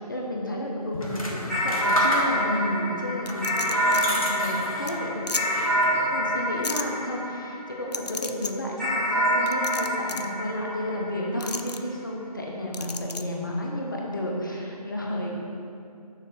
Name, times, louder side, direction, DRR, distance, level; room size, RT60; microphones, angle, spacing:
voice 1, 0.0-15.4, left 1 dB, 30° left, -2 dB, 0.7 m, -32 dB
sound 1, 0.9-2.7 3.2-5.0 5.4-6.1, left 1 dB, 60° left, 1.2 m, -31 dB
sound 2, 1.5-8.1 8.8-11.5, equal, ahead, 0.9 m, -27 dB
sound 3, 3.3-4.1 4.5-4.6 4.9-5.0 5.3-5.4 6.6-6.8 7.9-8.5 9.5-10.3 11.4-11.8 12.7-13.2, left 4 dB, 85° left, 0.5 m, -32 dB
6.6 x 3.8 x 6.2 m, 2.5 s
figure-of-eight pair, 155°, 20 cm